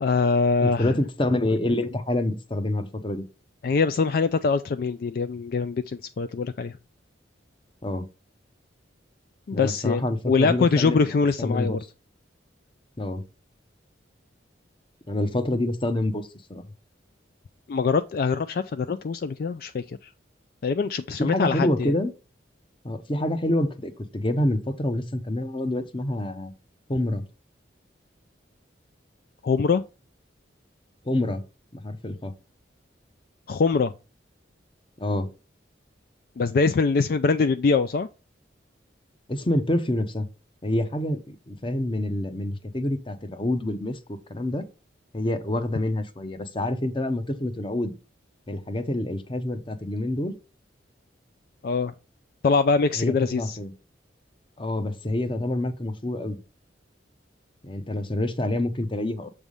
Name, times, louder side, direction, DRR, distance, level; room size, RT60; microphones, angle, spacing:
voice 1, 0.0-0.9 3.6-6.8 9.5-11.8 17.7-20.0 20.6-21.9 29.4-29.8 33.5-33.9 36.4-38.1 51.6-51.9 52.4-53.6, left 4 dB, 50° left, 0.3 m, -23 dB
voice 2, 0.6-3.2 7.8-8.1 9.5-11.8 13.0-13.2 15.1-16.6 21.2-22.1 22.8-26.5 26.9-27.2 31.0-31.4 31.7-32.3 35.0-35.3 39.3-40.2 40.6-44.7 45.1-47.9 48.5-50.4 52.9-53.7 54.6-56.4 57.6-59.3, left 1 dB, 25° left, 0.8 m, -27 dB
7.2 x 3.4 x 5.3 m
head